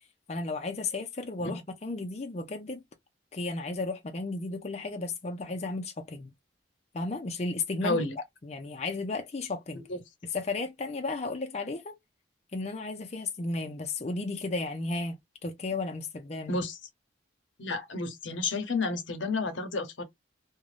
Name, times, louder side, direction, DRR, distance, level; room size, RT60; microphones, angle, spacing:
voice 1, 0.3-2.8 3.3-6.3 6.9-9.8 10.3-12.0 12.5-16.6, left 3 dB, 35° left, 0.5 m, -34 dB
voice 2, 7.8-8.2 9.9-10.0 16.5-16.8 17.6-20.0, left 3 dB, 85° left, 0.8 m, -31 dB
2.5 x 2.2 x 3.1 m
head